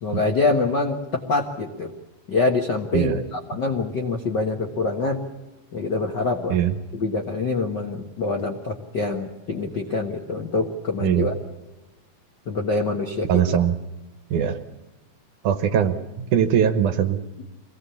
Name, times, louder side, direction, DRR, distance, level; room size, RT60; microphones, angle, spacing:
voice 1, 0.0-1.9 2.3-5.2 5.7-6.6 6.9-11.3 12.5-13.4, left 3 dB, 55° left, 2 dB, 1.2 m, -25 dB
voice 2, 11.0-11.3 13.3-13.7 14.3-14.6 15.4-16.0 16.3-17.2, right 9 dB, 65° right, 9 dB, 2.3 m, -20 dB
24.5 x 18.0 x 7.1 m, 1.1 s
omnidirectional pair, 4.2 m